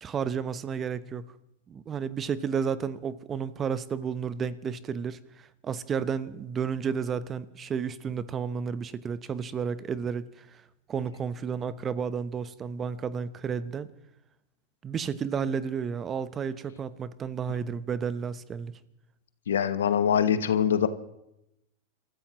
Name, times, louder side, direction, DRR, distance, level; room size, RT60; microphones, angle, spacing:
voice 1, 0.0-1.3 1.7-10.6 10.9-13.9 14.8-18.7, right 6 dB, 25° right, 0.8 m, -32 dB
voice 2, 19.5-20.9, left 8 dB, 85° left, 1.0 m, -23 dB
29.0 x 14.0 x 3.0 m
hypercardioid pair, 110°, 0 cm